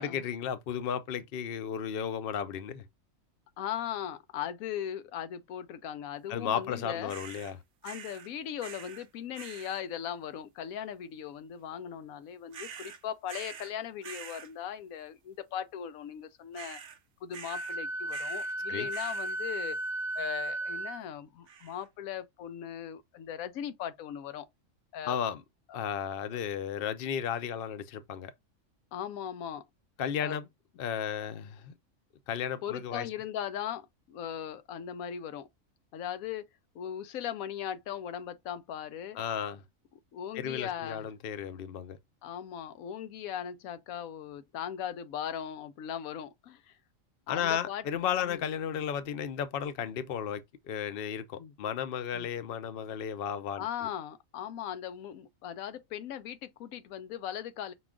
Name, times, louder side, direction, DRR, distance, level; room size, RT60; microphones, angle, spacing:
voice 1, 0.0-2.8 6.3-7.6 18.7-18.9 25.0-25.4 25.7-28.3 30.0-30.5 30.8-31.7 32.3-33.1 39.1-39.6 40.3-42.0 47.3-53.9, left 8 dB, 55° left, 0.7 m, -34 dB
voice 2, 3.6-7.1 7.8-16.8 17.2-19.8 20.2-24.5 24.9-25.2 28.9-29.6 30.2-30.4 32.6-35.5 35.9-36.5 36.7-39.2 40.1-41.1 42.2-46.7 47.3-47.8 48.2-48.4 51.4-51.5 52.1-52.3 53.6-57.7, left 9 dB, 85° left, 1.0 m, -38 dB
sound 1, 7.1-7.5 7.8-8.3 8.6-9.1 9.3-9.8 12.5-13.7 14.0-14.5 16.5-17.0 17.3-17.8 18.1-18.6 18.9-19.4 21.5-21.9, right 7 dB, 55° right, 0.7 m, -46 dB
Wind instrument woodwind instrument, 17.5-21.0, right 1 dB, 35° right, 1.1 m, -35 dB
5.9 x 2.3 x 3.6 m
omnidirectional pair, 1.4 m